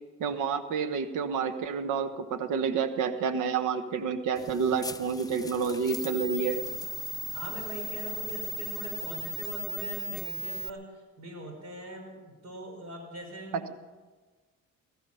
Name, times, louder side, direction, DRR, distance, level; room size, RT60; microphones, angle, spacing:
voice 1, 0.2-6.6, right 6 dB, 90° right, 10 dB, 1.2 m, -29 dB
sound 1, 4.4-10.7, equal, 15° left, 0.5 m, -37 dB
voice 2, 7.3-13.7, right 1 dB, 60° right, 2 dB, 5.4 m, -42 dB
17.5 x 14.0 x 5.6 m, 1.3 s
cardioid pair, 90°, 30 cm